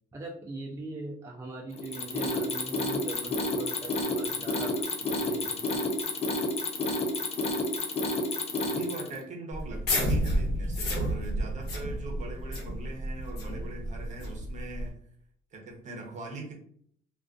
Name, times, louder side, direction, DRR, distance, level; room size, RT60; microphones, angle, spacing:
voice 1, 0.1-6.0 11.1-11.3, right 2 dB, 15° right, -1 dB, 0.4 m, -41 dB
Mechanisms, 1.8-9.2, left 2 dB, 40° left, 0.5 m, -30 dB
voice 2, 8.6-15.0 15.5-16.5, right 2 dB, 45° right, 1 dB, 0.8 m, -41 dB
sound 1, 9.5-14.9, equal, 75° left, 1.0 m, -31 dB
2.3 x 2.3 x 2.4 m, 0.64 s
cardioid pair, 110°, 17 cm